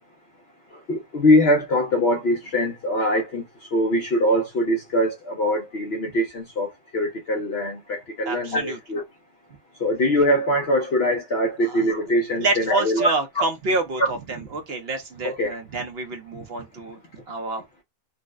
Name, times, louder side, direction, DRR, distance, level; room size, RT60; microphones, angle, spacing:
voice 1, 0.9-3.4 3.7-9.0 9.8-13.5 14.0-14.1 15.2-15.5, equal, 60° left, 0.7 m, -22 dB
voice 2, 8.3-8.8 11.6-11.8 12.4-17.0 17.3-17.6, right 2 dB, 55° right, 0.7 m, -28 dB
3.9 x 2.1 x 2.4 m
omnidirectional pair, 1.8 m